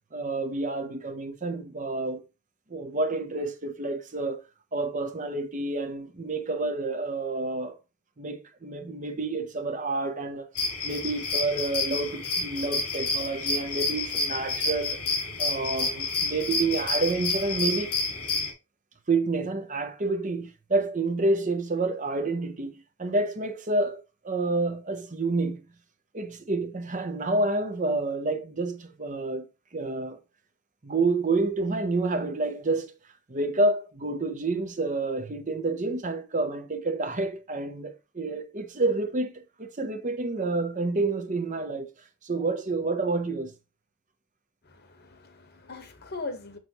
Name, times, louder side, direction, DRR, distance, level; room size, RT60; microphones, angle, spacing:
voice 1, 0.1-2.2 2.7-4.4 4.7-7.8 8.2-10.5 10.8-15.0 15.4-17.9 19.1-25.6 26.1-29.4 29.7-30.2 30.8-32.9 33.3-41.9 42.2-43.5, right 3 dB, 35° right, 0.8 m, -29 dB
sound 1, 10.5-18.5, left 3 dB, 90° left, 2.4 m, -29 dB
voice 2, 44.6-46.6, left 3 dB, 45° left, 1.2 m, -40 dB
6.7 x 6.3 x 2.9 m
head